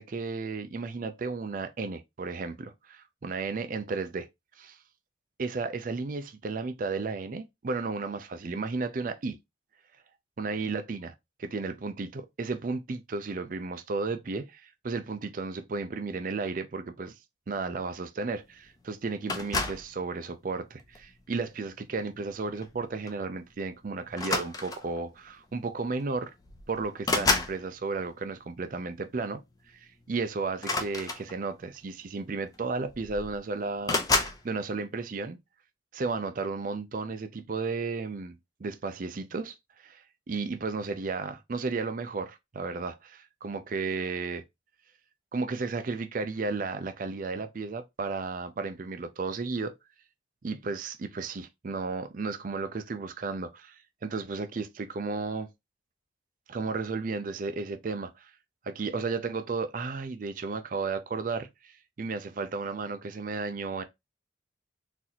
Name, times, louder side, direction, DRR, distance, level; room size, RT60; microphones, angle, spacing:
voice 1, 0.0-4.3 4.6-4.8 5.4-9.4 10.4-11.1 11.4-17.1 17.5-26.3 26.7-29.4 29.7-34.0 34.4-35.4 35.9-44.4 45.3-49.8 50.4-55.5 56.5-58.3 58.6-63.8, right 4 dB, 45° right, 0.4 m, -34 dB
sound 1, 19.3-19.9 20.8-21.1 22.6-22.8 23.1-23.3 24.1-25.0 26.0-26.1 26.4-27.6 30.5-31.6 32.5-32.6 32.9-33.4 33.9-34.4, left 3 dB, 20° left, 0.5 m, -29 dB
4.0 x 2.6 x 2.9 m
head